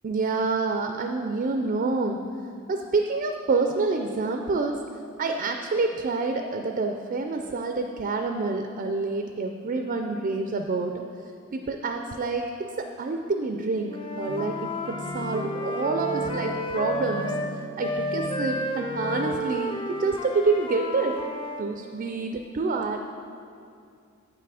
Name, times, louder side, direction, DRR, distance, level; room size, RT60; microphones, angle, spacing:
voice 1, 0.0-2.2 2.7-4.8 5.2-11.0 11.5-17.4 17.8-21.1 21.6-23.0, right 3 dB, 40° right, 5 dB, 0.4 m, -27 dB
Wind instrument woodwind instrument, 13.9-17.5 17.8-21.7, equal, 25° left, 0.4 m, -32 dB
sound 1, 14.3-19.3, left 2 dB, 75° left, 1.0 m, -38 dB
7.8 x 5.8 x 4.8 m, 2.4 s
head